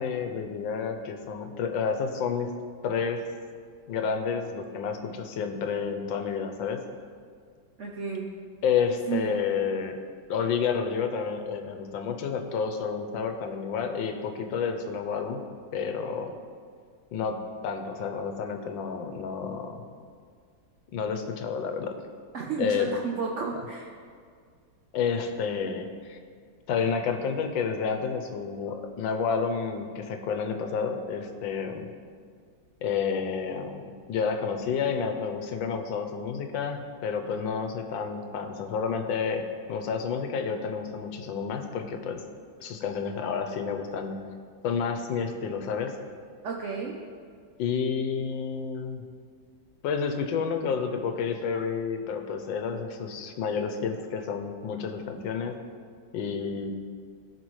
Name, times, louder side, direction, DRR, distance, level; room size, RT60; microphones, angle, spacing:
voice 1, 0.0-2.5 2.8-3.2 3.9-6.8 8.6-10.0 10.3-15.4 15.7-16.4 17.1-17.4 17.6-19.8 20.9-21.9 22.6-22.9 23.5-23.6 24.9-26.2 26.7-31.9 32.8-42.2 42.6-44.2 44.6-45.9 47.6-49.0 49.8-55.6 56.1-56.7, left 6 dB, 85° left, 5 dB, 1.4 m, -30 dB
voice 2, 7.8-8.3 9.1-9.4 22.3-23.9 46.4-47.0 56.4-56.7, right 5 dB, 65° right, -1 dB, 0.7 m, -32 dB
15.0 x 5.1 x 3.1 m, 2.1 s
omnidirectional pair, 2.1 m